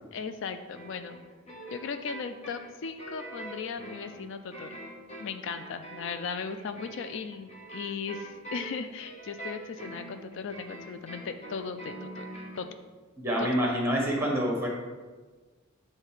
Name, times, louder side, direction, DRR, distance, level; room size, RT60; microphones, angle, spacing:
voice 1, 0.1-1.2 1.7-4.8 5.2-12.3 12.6-12.7 13.4-13.5, left 5 dB, 60° left, 9 dB, 0.3 m, -37 dB
sound 1, 0.7-12.7, right 2 dB, 30° left, 1.0 m, -44 dB
voice 2, 13.2-14.7, equal, 10° right, -1 dB, 1.2 m, -27 dB
8.4 x 3.2 x 4.8 m, 1.4 s
head